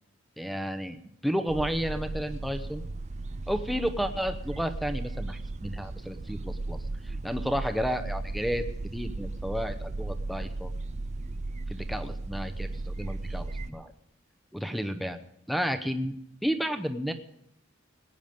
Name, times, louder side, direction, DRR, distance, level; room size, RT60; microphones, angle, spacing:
voice 1, 0.4-1.0 1.2-2.8 3.5-6.8 7.0-8.7 8.9-10.7 11.7-13.9 14.5-15.2 15.5-16.1 16.4-17.1, equal, ahead, 7 dB, 0.8 m, -32 dB
sound 1, 1.5-13.7, right 2 dB, 35° right, 0.4 m, -36 dB
19.0 x 9.3 x 5.2 m, 0.74 s
head